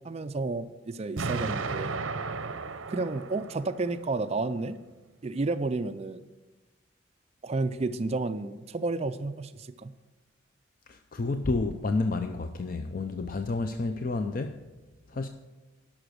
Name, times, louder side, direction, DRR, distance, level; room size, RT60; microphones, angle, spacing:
voice 1, 0.0-2.0 2.9-4.8 5.2-6.2 7.4-9.9, right 3 dB, 30° right, 0.3 m, -31 dB
Explosion, 1.2-4.2, right 4 dB, 70° right, 0.7 m, -34 dB
voice 2, 10.9-14.6 15.1-15.3, left 3 dB, 40° left, 0.4 m, -30 dB
11.5 x 6.0 x 6.3 m
head